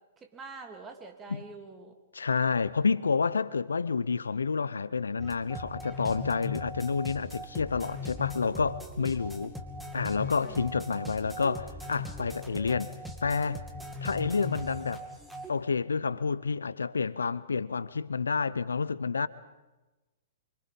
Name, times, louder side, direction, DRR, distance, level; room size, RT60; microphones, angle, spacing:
voice 1, 0.2-2.0 10.4-10.6, right 4 dB, 15° right, 3.1 m, -46 dB
voice 2, 2.1-9.5 9.9-12.9 13.2-13.6 14.0-15.0 15.5-19.3, left 5 dB, 80° left, 0.7 m, -29 dB
sound 1, 5.2-15.5, left 2 dB, ahead, 2.5 m, -39 dB
27.5 x 25.0 x 5.4 m
figure-of-eight pair, 115°, 0 cm